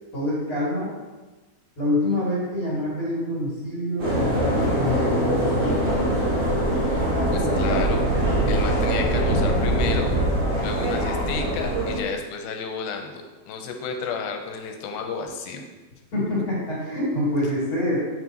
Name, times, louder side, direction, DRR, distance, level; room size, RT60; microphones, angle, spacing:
voice 1, 0.1-0.9 1.8-5.9 16.1-18.0, left 1 dB, 35° left, -9 dB, 3.1 m, -26 dB
sound 1, 4.0-12.0, right 1 dB, 70° right, 4.4 m, -22 dB
voice 2, 6.8-8.1 8.5-10.2 10.6-15.6, left 5 dB, 85° left, 4 dB, 2.5 m, -32 dB
8.8 x 6.3 x 2.9 m, 1.2 s
omnidirectional pair, 4.3 m